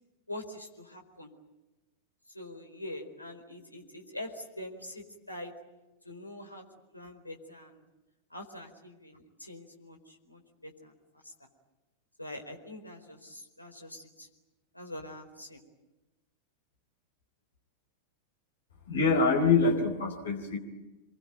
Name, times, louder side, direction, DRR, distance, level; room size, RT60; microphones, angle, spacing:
voice 1, 0.3-1.3 2.3-5.5 6.0-6.6 6.9-7.8 8.3-10.9 11.2-11.3 12.2-14.3 14.7-15.6, left 1 dB, 85° left, 4 dB, 4.5 m, -44 dB
voice 2, 18.9-20.6, left 4 dB, 65° left, 4 dB, 4.5 m, -25 dB
27.5 x 23.5 x 9.3 m, 1.1 s
figure-of-eight pair, 90°, 0 cm